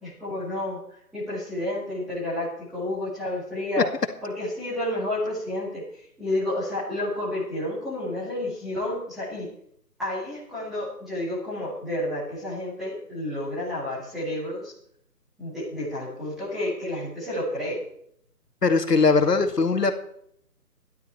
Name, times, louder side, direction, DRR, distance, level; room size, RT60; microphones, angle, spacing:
voice 1, 0.0-3.9 4.2-9.5 10.0-14.7 15.4-17.8, left 1 dB, ahead, -13 dB, 1.9 m, -30 dB
voice 2, 18.6-19.9, left 4 dB, 75° left, 7 dB, 2.3 m, -20 dB
14.5 x 12.0 x 4.5 m, 0.68 s
hypercardioid pair, 175°, 48 cm